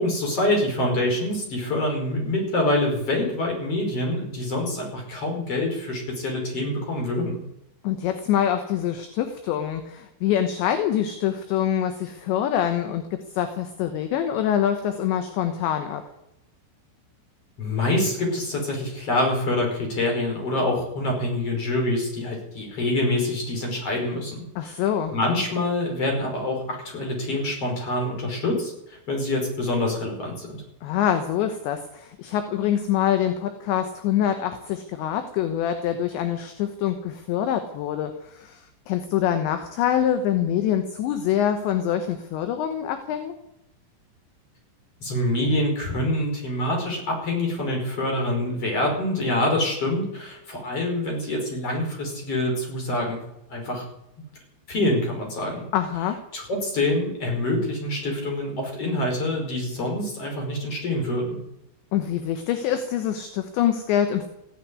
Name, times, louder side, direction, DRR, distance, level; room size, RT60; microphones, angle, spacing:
voice 1, 0.0-7.4 17.6-24.8 25.1-30.6 45.0-53.2 53.5-53.8 54.7-55.7 56.3-61.4, left 1 dB, 30° left, 1 dB, 5.5 m, -26 dB
voice 2, 7.8-16.0 24.6-25.1 30.8-43.3 55.7-56.2 61.9-64.3, left 10 dB, 70° left, 8 dB, 3.0 m, -25 dB
16.0 x 9.3 x 9.7 m, 0.84 s
omnidirectional pair, 5.9 m